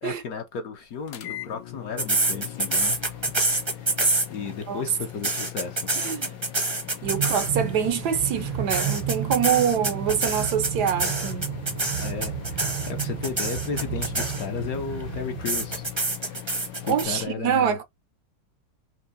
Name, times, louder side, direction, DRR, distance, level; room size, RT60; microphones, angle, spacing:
voice 1, 0.0-3.0 3.8-3.9 4.3-5.9 12.0-15.9 16.3-16.5 16.8-17.8, left 6 dB, 60° left, 1.0 m, -34 dB
sound 1, 1.1-17.3, left 13 dB, 80° left, 1.4 m, -40 dB
sound 2, 2.0-4.6 5.0-7.7 8.7-14.7 15.5-17.0, right 2 dB, 25° right, 0.6 m, -26 dB
voice 2, 6.0-6.3 7.0-11.5 16.9-17.8, right 8 dB, 70° right, 1.1 m, -25 dB
Train, 7.0-15.9, right 9 dB, 90° right, 2.0 m, -33 dB
4.5 x 2.8 x 2.7 m
omnidirectional pair, 2.0 m